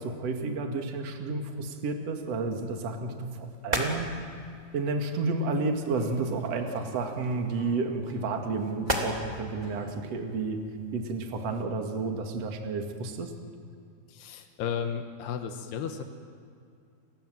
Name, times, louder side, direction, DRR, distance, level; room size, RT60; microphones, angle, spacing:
voice 1, 0.0-4.2 4.7-10.6 10.9-13.3, right 3 dB, 45° right, 4 dB, 2.8 m, -31 dB
sound 1, 2.3-11.6, right 1 dB, 10° right, 2.5 m, -39 dB
Acoustic guitar / Strum, 5.9-10.0, left 2 dB, 25° left, 1.8 m, -48 dB
voice 2, 14.1-16.0, left 7 dB, 90° left, 6 dB, 3.3 m, -34 dB
30.0 x 22.5 x 7.9 m, 2.4 s
omnidirectional pair, 4.5 m